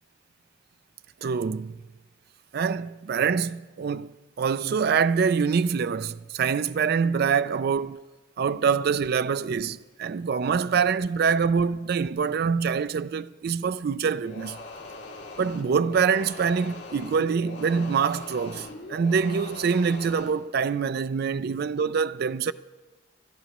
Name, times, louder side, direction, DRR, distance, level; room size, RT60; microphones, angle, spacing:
voice 1, 1.2-1.8 2.5-8.0 8.4-14.6 15.4-22.5, right 6 dB, 55° right, 0.4 m, -25 dB
sound 1, 14.2-20.4, left 2 dB, 90° left, 2.2 m, -41 dB
28.5 x 12.0 x 3.0 m
head